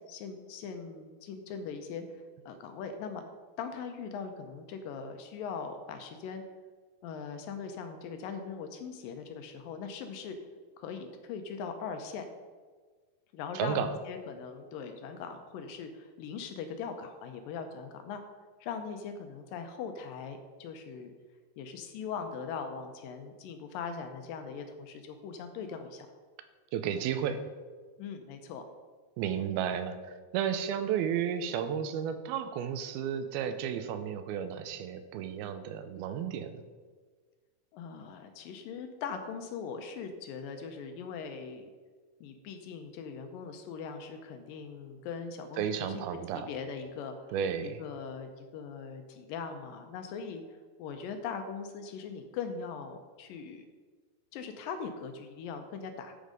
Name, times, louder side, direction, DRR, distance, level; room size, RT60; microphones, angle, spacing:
voice 1, 0.1-3.3 3.6-6.4 7.0-10.4 10.8-12.3 13.3-18.2 18.6-21.1 21.6-26.1 28.0-28.6 37.7-41.7 42.2-46.0 46.3-47.4 47.6-53.7 54.3-56.2, left 6 dB, 75° left, 7 dB, 2.3 m, -40 dB
voice 2, 13.5-13.9 26.7-27.4 29.2-36.6 45.6-46.5 47.3-47.8, right 8 dB, 85° right, 10 dB, 2.5 m, -33 dB
11.5 x 5.2 x 5.2 m, 1.5 s
omnidirectional pair, 4.3 m